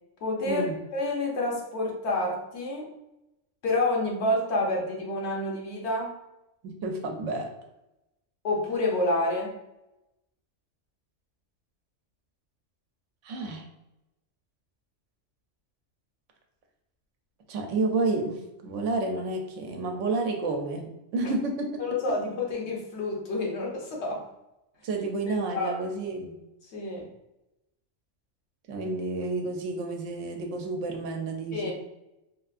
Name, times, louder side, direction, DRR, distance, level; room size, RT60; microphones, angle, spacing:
voice 1, 0.2-2.9 3.6-6.2 8.4-9.6 21.2-21.3 21.8-24.2 25.5-25.9 26.7-27.1 31.5-31.7, left 2 dB, 65° left, -1 dB, 1.0 m, -28 dB
voice 2, 6.6-7.5 13.2-13.6 17.5-21.7 24.8-26.4 28.7-31.7, right 3 dB, 80° right, 3 dB, 1.0 m, -30 dB
3.3 x 2.5 x 2.4 m, 0.92 s
omnidirectional pair, 1.3 m